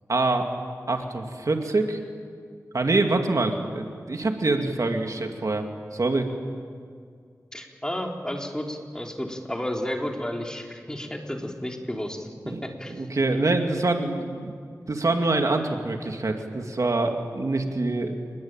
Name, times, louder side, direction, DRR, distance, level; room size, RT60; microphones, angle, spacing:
voice 1, 0.1-0.5 0.9-2.0 2.7-6.3 12.4-12.6 12.9-14.5 14.9-18.4, right 2 dB, 60° right, 4 dB, 2.3 m, -25 dB
voice 2, 7.5-13.0, left 1 dB, 10° left, 1 dB, 3.4 m, -32 dB
29.5 x 20.5 x 9.0 m, 2.2 s
wide cardioid pair, 75°, 6 cm